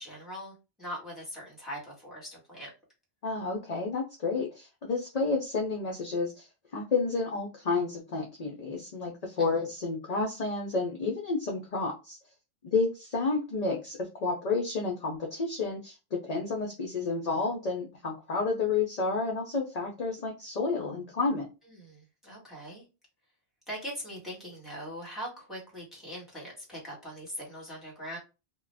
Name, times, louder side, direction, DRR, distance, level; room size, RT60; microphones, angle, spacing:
voice 1, 0.0-2.7 9.4-9.7 21.7-22.8 23.7-28.2, equal, ahead, -4 dB, 1.3 m, -41 dB
voice 2, 3.2-6.5 6.7-12.2 12.6-21.5, left 4 dB, 45° left, 0 dB, 0.6 m, -30 dB
2.4 x 2.2 x 3.2 m, 0.29 s
omnidirectional pair, 1.1 m